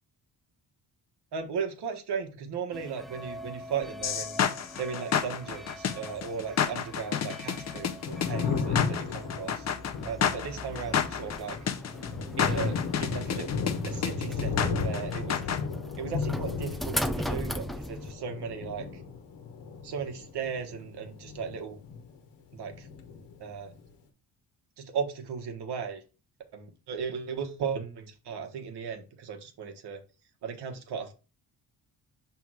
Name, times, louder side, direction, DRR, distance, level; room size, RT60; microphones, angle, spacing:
voice 1, 1.3-4.4 4.8-9.7 10.0-11.7 12.4-13.5 13.8-15.4 16.0-19.0 19.8-21.8 22.5-22.9 23.4-23.7 24.8-26.0 26.5-30.0 30.4-31.1, right 6 dB, 70° right, 6 dB, 1.3 m, -36 dB
sound 1, 2.7-18.1, equal, ahead, 0.3 m, -40 dB
sound 2, 4.0-15.6, left 8 dB, 40° left, 0.6 m, -30 dB
Thunder, 7.8-22.3 22.5-23.8, left 5 dB, 90° left, 1.3 m, -35 dB
6.1 x 3.4 x 4.7 m, 0.32 s
cardioid pair, 115°, 41 cm